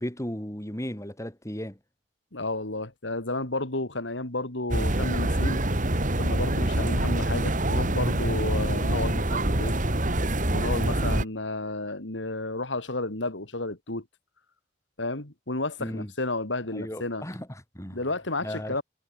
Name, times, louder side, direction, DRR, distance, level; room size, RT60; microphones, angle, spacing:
voice 1, 0.0-1.8 15.8-16.1 16.7-18.0 18.4-18.8, equal, 15° left, 5.8 m, -35 dB
voice 2, 2.3-5.6 6.2-9.8 10.5-14.0 15.0-17.2 17.9-18.8, left 2 dB, 85° left, 3.5 m, -32 dB
sound 1, 4.7-11.2, right 1 dB, 45° right, 3.0 m, -25 dB
head